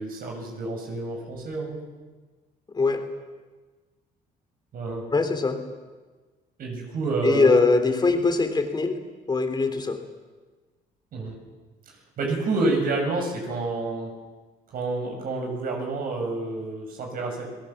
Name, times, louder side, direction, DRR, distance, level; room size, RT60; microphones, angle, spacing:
voice 1, 0.0-1.8 4.7-5.1 6.6-7.6 11.1-11.4 12.2-14.2 14.7-17.5, right 2 dB, 60° right, 2 dB, 7.0 m, -28 dB
voice 2, 5.1-5.6 7.2-9.0 9.3-10.0, left 3 dB, 25° left, 6 dB, 3.5 m, -21 dB
29.5 x 19.5 x 7.3 m, 1.3 s
cardioid pair, 110°, 17 cm